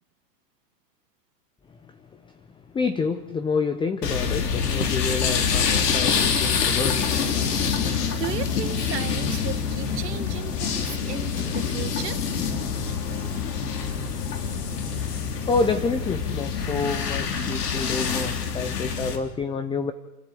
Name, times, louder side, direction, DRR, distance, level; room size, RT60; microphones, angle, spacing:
voice 1, 2.7-7.0 15.5-19.9, left 4 dB, 10° left, 11 dB, 0.8 m, -28 dB
sound 1, 4.0-19.2, left 6 dB, 75° left, 4.0 m, -26 dB
voice 2, 8.2-12.2, right 11 dB, 80° right, 11 dB, 1.8 m, -35 dB
29.0 x 13.0 x 8.5 m, 1.0 s
hypercardioid pair, 130°, 48 cm